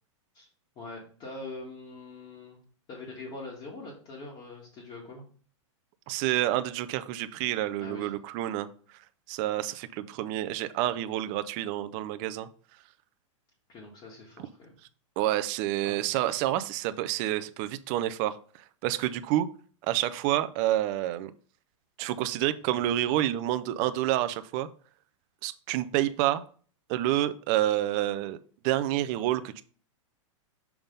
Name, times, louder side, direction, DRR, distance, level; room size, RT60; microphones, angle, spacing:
voice 1, 0.7-2.6 2.9-5.2 7.8-8.1 13.7-14.7 15.8-16.3, left 2 dB, 30° left, -4 dB, 1.7 m, -43 dB
voice 2, 6.1-8.7 9.3-12.5 15.2-19.5 19.9-21.3 22.0-24.7 25.4-26.4 26.9-28.4 28.6-29.6, right 13 dB, 40° right, 13 dB, 0.4 m, -28 dB
5.8 x 3.5 x 5.2 m, 0.43 s
hypercardioid pair, 140°, 16 cm